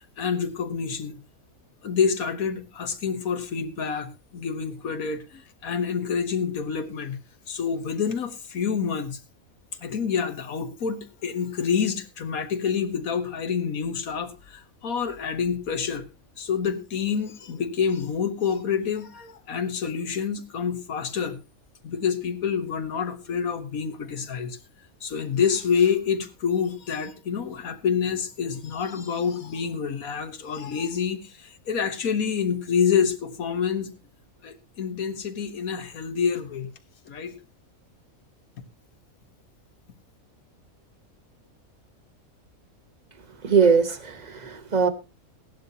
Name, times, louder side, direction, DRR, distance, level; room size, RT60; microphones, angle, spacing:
voice 1, 0.2-1.2 1.8-7.2 7.5-9.2 9.8-16.1 16.4-21.4 21.8-24.6 25.0-33.9 34.4-36.7 37.1-37.3, left 6 dB, 80° left, 9 dB, 1.7 m, -27 dB
voice 2, 43.4-44.9, right 5 dB, 35° right, 11 dB, 1.2 m, -21 dB
16.5 x 11.0 x 2.8 m, 0.27 s
omnidirectional pair, 1.5 m